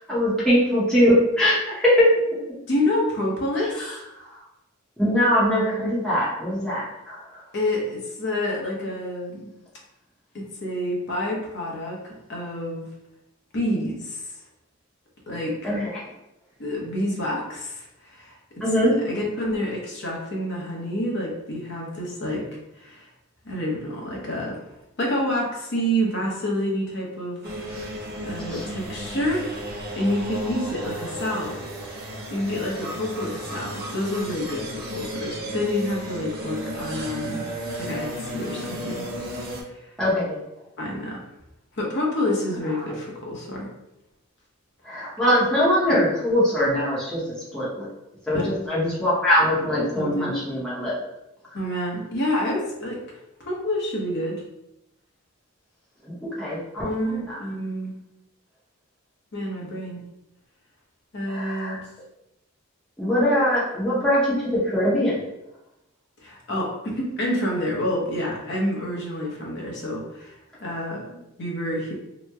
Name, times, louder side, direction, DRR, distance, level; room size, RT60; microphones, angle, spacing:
voice 1, 0.1-2.1 3.6-3.9 4.3-4.4 5.0-7.4 15.6-16.0 18.6-18.9 28.5-28.6 40.0-40.4 44.8-47.2 47.5-47.9 48.3-51.0 56.0-57.4 61.3-61.7 63.0-65.2, equal, 5° left, -9 dB, 0.8 m, -22 dB
voice 2, 2.7-3.8 7.5-9.5 10.3-12.9 13.5-14.3 15.3-15.6 16.6-18.4 18.8-22.5 22.8-23.1 23.4-24.6 25.0-27.9 28.2-29.5 30.0-31.7 31.9-37.4 37.8-39.0 39.6-39.9 40.8-41.2 41.7-43.7 48.3-48.5 49.9-50.3 51.5-53.0 53.4-54.4 56.8-57.9 59.3-60.0 61.1-61.8 66.2-71.9, left 1 dB, 50° left, -2 dB, 0.8 m, -28 dB
sound 1, 27.4-39.6, right 1 dB, 45° right, 0.6 m, -34 dB
2.9 x 2.1 x 3.4 m, 0.88 s
head